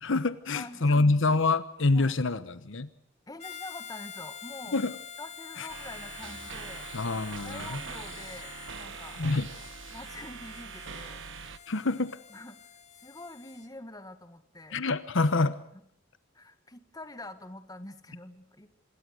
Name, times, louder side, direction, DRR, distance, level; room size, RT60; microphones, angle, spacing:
voice 1, 0.0-2.9 4.7-4.9 5.6-5.7 6.9-7.8 9.2-9.5 11.7-12.2 14.7-15.6, left 3 dB, 65° left, 13 dB, 1.1 m, -26 dB
voice 2, 0.5-1.2 1.9-2.2 3.3-4.8 5.2-6.9 7.4-9.2 9.9-11.2 12.3-12.6 12.9-14.9 15.7-15.8 16.3-18.7, left 2 dB, 20° left, 10 dB, 1.8 m, -45 dB
Harmonica, 3.4-13.7, left 8 dB, 35° left, 1.9 m, -46 dB
sound 1, 5.7-11.6, right 6 dB, 65° right, 1.3 m, -43 dB
26.5 x 21.5 x 6.5 m, 0.70 s
head